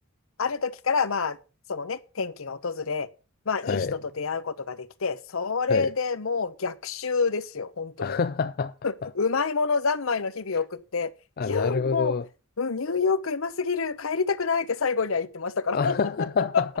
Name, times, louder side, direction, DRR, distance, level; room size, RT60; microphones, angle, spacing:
voice 1, 0.4-1.4 1.7-3.1 3.5-8.2 8.8-11.1 11.4-12.2 12.6-16.0, left 5 dB, 75° left, 0.8 m, -27 dB
voice 2, 3.6-4.0 5.7-5.9 8.0-8.7 9.0-9.1 11.4-12.2 15.7-16.8, left 5 dB, 45° left, 0.4 m, -27 dB
10.0 x 6.7 x 6.4 m
head